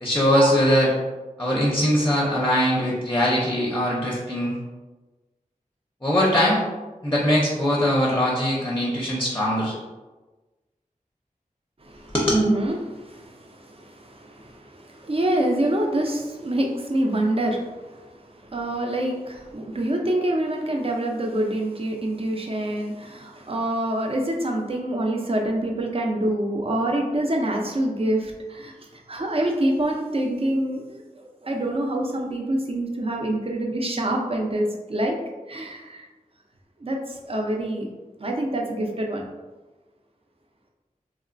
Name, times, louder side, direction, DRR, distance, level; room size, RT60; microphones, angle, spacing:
voice 1, 0.0-0.9 1.4-4.6 6.0-6.6 7.0-9.7 12.1-12.3, equal, 15° left, -5 dB, 0.6 m, -21 dB
voice 2, 11.8-35.2 35.5-36.1 36.8-37.9 38.2-39.2, right 1 dB, 45° right, 1 dB, 0.5 m, -26 dB
3.0 x 2.1 x 2.5 m, 1.2 s
wide cardioid pair, 50°, 14 cm